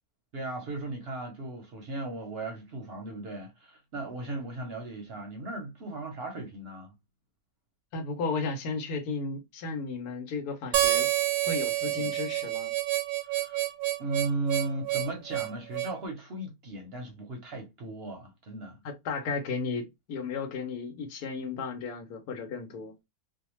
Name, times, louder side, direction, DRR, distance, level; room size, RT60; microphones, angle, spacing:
voice 1, 0.3-6.9 11.9-12.1 13.2-13.7 14.0-18.8, right 2 dB, 55° right, 0.7 m, -36 dB
voice 2, 7.9-11.1 11.4-12.7 18.8-22.9, left 4 dB, 90° left, 1.2 m, -34 dB
Harmonica, 10.7-16.0, right 14 dB, 85° right, 1.1 m, -28 dB
2.7 x 2.1 x 2.9 m
omnidirectional pair, 1.6 m